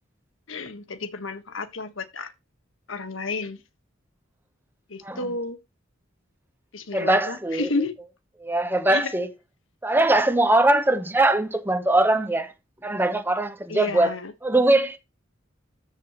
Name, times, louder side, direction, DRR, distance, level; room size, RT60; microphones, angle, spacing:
voice 1, 0.5-2.3 2.9-3.6 4.9-5.6 6.7-8.0 8.9-9.1 13.7-14.3, left 3 dB, 85° left, 1.5 m, -31 dB
voice 2, 6.9-7.7 8.4-9.3 9.8-12.5 12.8-14.1 14.4-15.0, right 2 dB, 10° right, 1.1 m, -21 dB
13.5 x 7.3 x 3.1 m
head